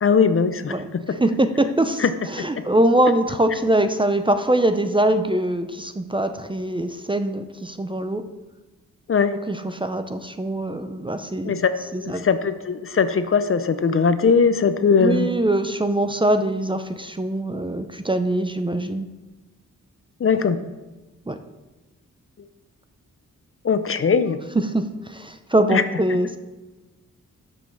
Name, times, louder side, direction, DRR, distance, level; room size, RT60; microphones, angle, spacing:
voice 1, 0.0-1.2 2.0-2.1 2.4-2.7 9.1-9.4 11.4-15.3 20.2-20.6 23.6-24.4 25.7-25.8, left 5 dB, 40° left, 11 dB, 0.5 m, -20 dB
voice 2, 0.7-8.3 9.5-11.6 11.9-12.3 15.0-19.1 21.3-21.4 24.6-26.4, right 1 dB, 15° right, 8 dB, 0.4 m, -23 dB
7.0 x 5.4 x 6.3 m, 1.1 s
wide cardioid pair, 95°, 33 cm